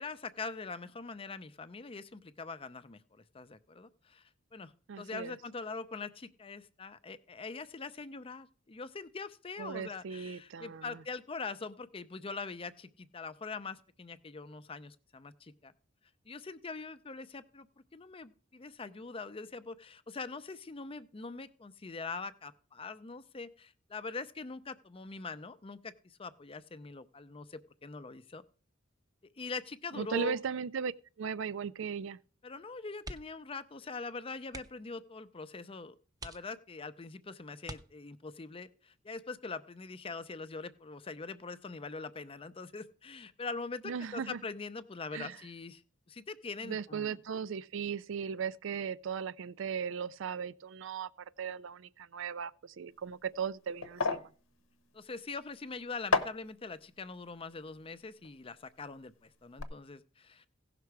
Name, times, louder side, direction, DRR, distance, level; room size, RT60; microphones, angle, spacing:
voice 1, 0.0-15.7 16.3-17.7 17.9-28.4 29.4-30.4 32.4-36.0 36.2-45.8 46.1-47.2 54.9-60.5, left 4 dB, 25° left, 0.5 m, -43 dB
voice 2, 4.9-5.4 9.6-11.0 29.9-30.9 31.2-32.2 43.8-44.4 45.1-45.4 46.6-51.1 51.4-54.3, right 6 dB, 65° right, 0.4 m, -37 dB
sound 1, 33.0-33.5 33.8-34.0 34.4-34.9 35.6-35.7 36.1-36.9 37.6-38.4 40.0-40.3 40.6-40.7, right 2 dB, 20° right, 0.6 m, -47 dB
sound 2, 52.9-59.1 59.3-59.6, left 4 dB, 85° left, 0.9 m, -37 dB
16.5 x 5.9 x 4.7 m
head